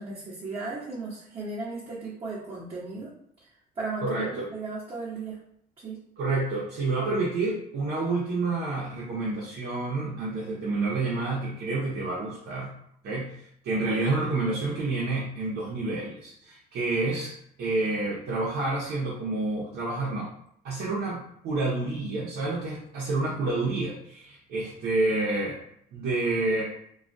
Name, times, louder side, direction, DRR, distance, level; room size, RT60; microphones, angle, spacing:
voice 1, 0.0-3.1 3.4-3.5 3.8-5.4 5.8-6.0, right 3 dB, 30° right, -8 dB, 0.9 m, -35 dB
voice 2, 4.0-4.5 6.2-12.7 13.0-17.3 17.6-20.3 20.6-25.6 25.9-26.6, right 2 dB, 70° right, -5 dB, 0.8 m, -29 dB
2.4 x 2.2 x 2.5 m, 0.70 s
cardioid pair, 110°, 17 cm